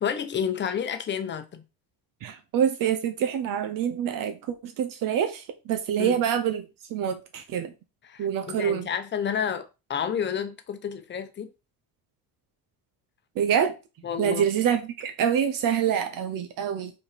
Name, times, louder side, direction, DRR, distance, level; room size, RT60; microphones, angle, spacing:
voice 1, 0.0-1.6 6.0-6.2 8.0-11.5 14.0-14.5, left 8 dB, 30° left, 0.9 m, -30 dB
voice 2, 2.2-7.7 8.2-8.9 13.4-13.7 14.2-16.9, right 8 dB, 60° right, 0.9 m, -26 dB
5.7 x 4.2 x 5.1 m
cardioid pair, 170°, 38 cm